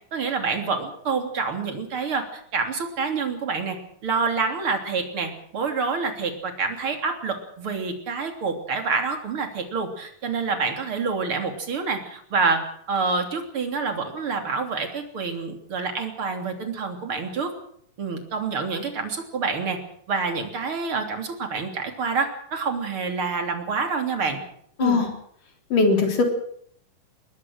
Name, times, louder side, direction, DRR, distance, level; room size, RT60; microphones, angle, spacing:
voice 1, 0.1-3.8 4.0-12.6 12.9-17.5 18.0-19.8 20.1-24.4 24.8-25.0, right 4 dB, 35° right, 5 dB, 3.7 m, -27 dB
voice 2, 25.7-26.2, left 4 dB, 60° left, 4 dB, 5.1 m, -19 dB
21.0 x 21.0 x 6.5 m, 0.66 s
omnidirectional pair, 4.3 m